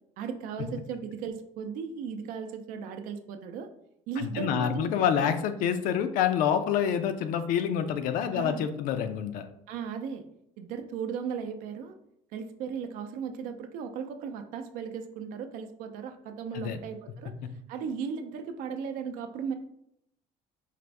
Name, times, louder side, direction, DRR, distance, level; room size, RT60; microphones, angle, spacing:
voice 1, 0.2-3.7 4.1-4.9 5.2-5.3 8.3-8.6 9.7-10.3 10.6-11.9 12.3-17.3 17.7-19.5, right 6 dB, 75° right, 7 dB, 0.5 m, -36 dB
voice 2, 4.2-9.5 16.5-16.8, left 8 dB, 75° left, 9 dB, 0.5 m, -27 dB
4.9 x 2.5 x 3.3 m, 0.77 s
cardioid pair, 135°, 14 cm